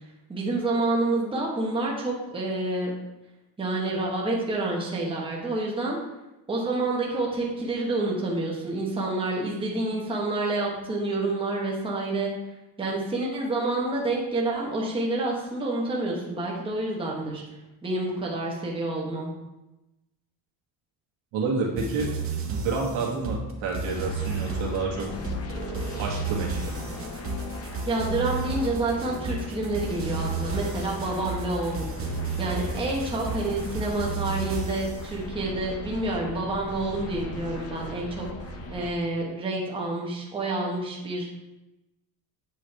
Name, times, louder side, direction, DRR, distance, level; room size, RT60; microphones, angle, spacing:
voice 1, 0.3-2.9 3.6-6.0 6.5-12.3 12.8-17.4 17.8-19.3 27.9-31.9 32.4-41.3, right 2 dB, 10° right, -3 dB, 1.1 m, -28 dB
voice 2, 21.3-22.1 22.5-25.1 26.0-26.9, right 4 dB, 80° right, -1 dB, 1.7 m, -29 dB
sound 1, 21.8-35.0, right 4 dB, 30° right, 0.8 m, -33 dB
sound 2, 23.9-38.9, left 2 dB, 30° left, 0.6 m, -38 dB
8.1 x 5.1 x 3.3 m, 0.97 s
cardioid pair, 165°, 46 cm